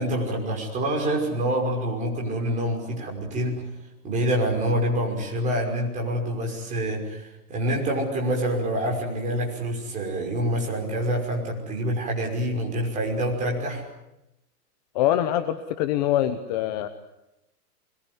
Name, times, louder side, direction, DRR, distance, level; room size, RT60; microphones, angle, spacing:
voice 1, 0.0-3.7 4.0-13.9, right 1 dB, 15° right, 0 dB, 5.9 m, -26 dB
voice 2, 14.9-16.9, left 12 dB, 25° left, 9 dB, 1.0 m, -24 dB
25.0 x 22.0 x 9.8 m, 0.89 s
hypercardioid pair, 165°, 47 cm